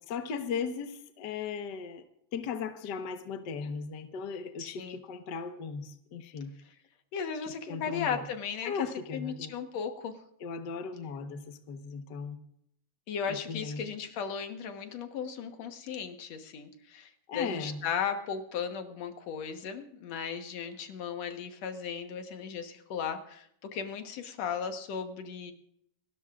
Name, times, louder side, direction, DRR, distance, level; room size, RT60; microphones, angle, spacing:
voice 1, 0.1-2.1 2.3-6.5 7.7-8.2 8.6-9.5 10.4-12.4 13.3-13.8 17.3-17.8, left 5 dB, 75° left, 7 dB, 0.9 m, -37 dB
voice 2, 4.6-5.0 7.1-8.9 9.1-10.2 13.1-25.5, left 7 dB, 60° left, 6 dB, 2.2 m, -36 dB
28.0 x 13.0 x 2.5 m, 0.72 s
omnidirectional pair, 3.8 m